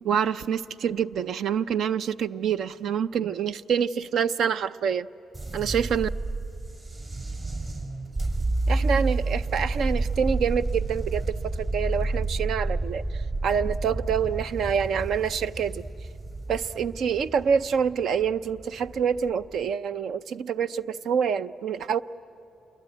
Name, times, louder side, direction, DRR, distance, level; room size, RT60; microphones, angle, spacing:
voice 1, 0.0-5.1 5.5-6.1 8.7-15.8 16.5-22.0, right 7 dB, 70° right, 13 dB, 0.5 m, -26 dB
sound 1, 5.3-19.5, right 2 dB, 40° right, 5.8 m, -30 dB
27.5 x 22.0 x 9.2 m, 2.7 s
cardioid pair, 90°, 0 cm